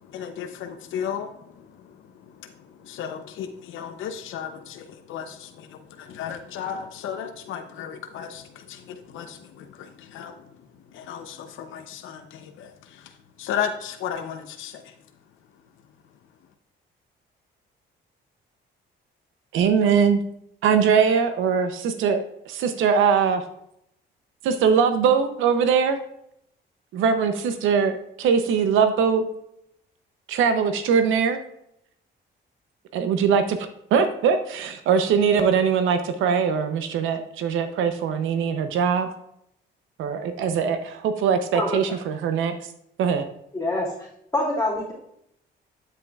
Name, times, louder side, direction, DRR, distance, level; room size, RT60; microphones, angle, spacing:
voice 1, 0.1-1.9 2.4-2.5 2.8-10.3 10.9-13.1 13.4-14.9, left 8 dB, 85° left, 7 dB, 0.7 m, -34 dB
voice 2, 19.5-20.2 20.6-23.4 24.4-26.0 26.9-29.3 30.3-31.4 32.9-33.6 33.9-39.1 40.0-42.5 43.0-43.3, right 6 dB, 85° right, 8 dB, 0.7 m, -21 dB
voice 3, 43.5-43.9 44.3-44.9, left 2 dB, 15° left, -7 dB, 2.7 m, -25 dB
8.7 x 7.7 x 2.4 m, 0.75 s
cardioid pair, 90°, 20 cm